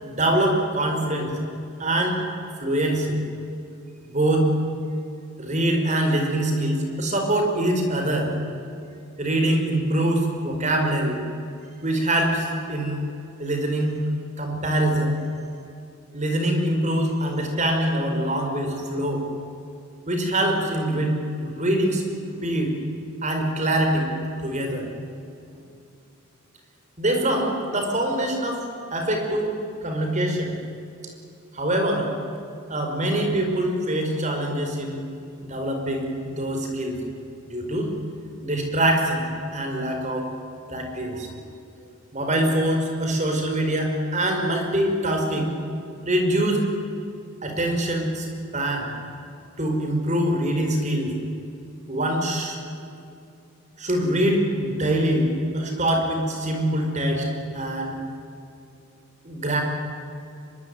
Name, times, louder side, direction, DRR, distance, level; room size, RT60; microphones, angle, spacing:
voice 1, 0.0-1.4 1.8-2.2 2.6-3.2 4.0-4.5 5.4-8.3 9.2-11.2 11.8-13.0 13.4-14.0 14.4-15.2 16.1-19.2 20.1-21.2 21.4-22.7 23.2-24.1 24.4-24.8 27.0-28.6 28.9-29.5 29.8-30.5 31.5-32.1 32.7-35.0 35.5-37.0 37.5-37.9 38.4-39.2 39.5-40.3 40.7-41.3 42.1-45.5 46.0-46.6 47.4-48.3 48.5-48.9 49.6-51.1 51.9-52.6 53.8-57.3 57.5-58.0 59.2-59.6, right 1 dB, 35° right, 3 dB, 4.9 m, -24 dB
24.5 x 22.0 x 9.6 m, 2.6 s
head